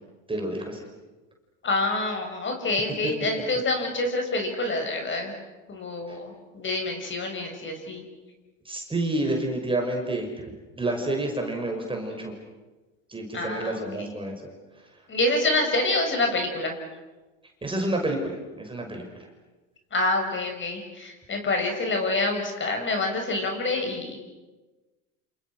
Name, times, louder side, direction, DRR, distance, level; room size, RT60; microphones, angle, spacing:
voice 1, 0.3-0.8 8.6-12.3 13.1-14.3 17.6-19.3, right 1 dB, 15° right, 2 dB, 6.2 m, -29 dB
voice 2, 1.6-5.3 5.7-8.0 13.3-14.1 15.1-16.7 19.9-24.2, left 2 dB, 30° left, 4 dB, 7.0 m, -27 dB
28.5 x 28.0 x 6.4 m, 1.2 s
hypercardioid pair, 95°, 38 cm